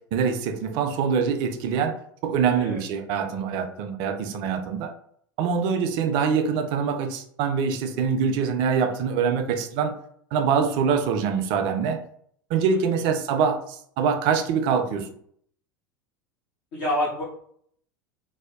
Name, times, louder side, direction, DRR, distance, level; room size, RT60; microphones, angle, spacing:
voice 1, 0.1-1.9 2.2-4.9 5.4-9.9 10.3-12.0 12.5-15.1, right 6 dB, 45° right, 7 dB, 0.4 m, -24 dB
voice 2, 2.5-2.8 12.7-12.8 16.7-17.2, left 1 dB, 55° left, -7 dB, 0.8 m, -27 dB
2.6 x 2.1 x 2.3 m, 0.63 s
figure-of-eight pair, 75°, 11 cm